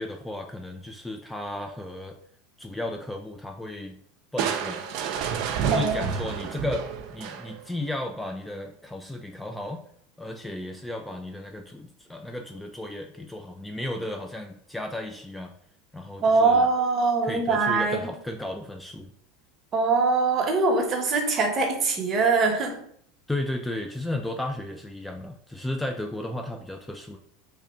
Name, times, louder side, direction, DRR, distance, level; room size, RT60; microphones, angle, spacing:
voice 1, 0.0-2.2 2.6-4.0 4.3-4.8 5.6-6.9 7.1-9.8 10.2-15.5 15.9-16.6 17.2-19.1 23.3-27.2, left 1 dB, 5° left, 3 dB, 0.3 m, -34 dB
Crushing, 4.4-7.8, right 7 dB, 60° right, 0.4 m, -29 dB
voice 2, 5.7-6.1 16.2-18.1 19.7-22.8, right 4 dB, 35° right, 3 dB, 0.9 m, -23 dB
3.2 x 2.3 x 4.2 m, 0.66 s
hypercardioid pair, 95°, 0 cm